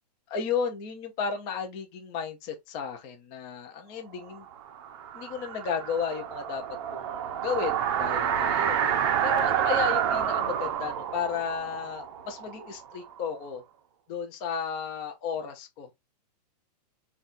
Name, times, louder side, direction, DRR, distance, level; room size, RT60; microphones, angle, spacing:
voice 1, 0.3-4.5 5.1-6.6 6.9-8.8 9.2-13.6 14.1-15.9, left 6 dB, 20° left, 0.4 m, -33 dB
sound 1, 4.4-13.2, right 9 dB, 35° right, 0.5 m, -29 dB
4.0 x 2.2 x 2.5 m
hypercardioid pair, 165°, 21 cm